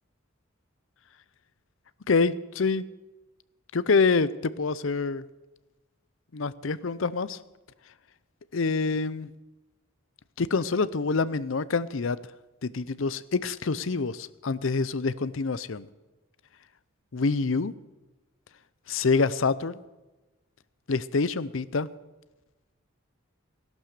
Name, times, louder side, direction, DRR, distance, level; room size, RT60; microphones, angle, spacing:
voice 1, 2.1-2.8 3.7-5.2 6.3-7.4 8.5-9.3 10.4-12.2 12.6-15.9 17.1-17.7 18.9-19.8 20.9-21.9, left 4 dB, 65° left, 16 dB, 0.6 m, -26 dB
16.0 x 12.0 x 6.7 m, 1.1 s
head